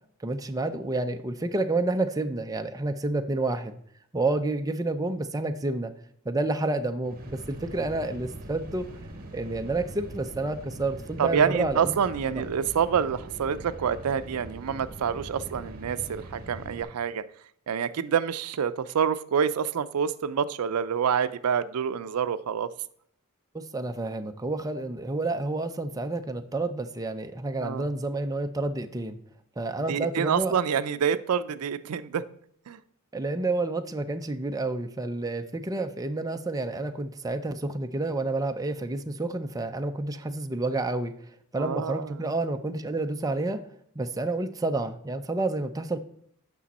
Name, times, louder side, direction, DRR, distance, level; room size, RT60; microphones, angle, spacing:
voice 1, 0.2-3.7 4.1-5.9 6.3-8.9 9.3-12.0 23.5-29.2 29.6-30.6 33.1-41.1 41.5-43.6 44.0-46.0, right 2 dB, 15° right, 6 dB, 0.5 m, -29 dB
sound 1, 7.0-16.8, right 1 dB, 45° right, 1.3 m, -42 dB
voice 2, 11.2-17.2 17.7-22.7 27.6-27.9 29.9-32.2 32.7-32.8 41.6-42.1, right 7 dB, 90° right, 14 dB, 0.4 m, -27 dB
8.5 x 6.1 x 4.1 m, 0.67 s
head